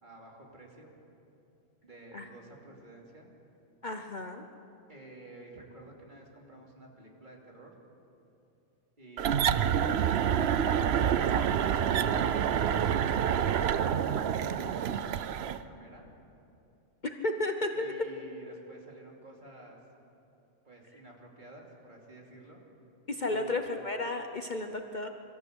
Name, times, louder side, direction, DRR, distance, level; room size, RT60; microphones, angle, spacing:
voice 1, 0.0-0.9 1.8-3.3 4.9-7.7 9.0-9.7 13.8-16.1 17.7-19.8 20.6-22.6 23.3-23.7, right 2 dB, 40° right, -1 dB, 2.9 m, -51 dB
voice 2, 3.8-4.4 17.0-18.1 23.1-25.1, left 2 dB, 45° left, 5 dB, 0.9 m, -33 dB
sound 1, 9.2-15.6, right 8 dB, 65° right, 0.8 m, -27 dB
23.5 x 14.0 x 8.0 m, 2.8 s
omnidirectional pair, 1.3 m